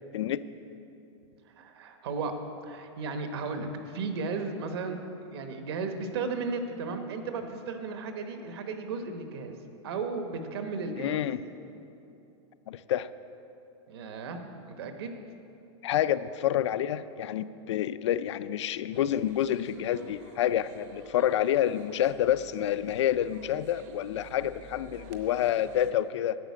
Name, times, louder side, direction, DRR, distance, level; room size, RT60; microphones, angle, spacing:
voice 1, 1.6-2.3 2.6-5.0 5.3-9.5 9.8-11.2 13.9-14.4 14.7-15.2, right 4 dB, 60° right, 6 dB, 1.2 m, -35 dB
voice 2, 11.0-11.4 12.7-13.1 15.8-26.4, left 11 dB, 70° left, 13 dB, 0.4 m, -28 dB
sound 1, 18.9-25.9, right 4 dB, 35° right, 0.8 m, -51 dB
11.0 x 6.6 x 8.4 m, 2.8 s
supercardioid pair, 175°, 15 cm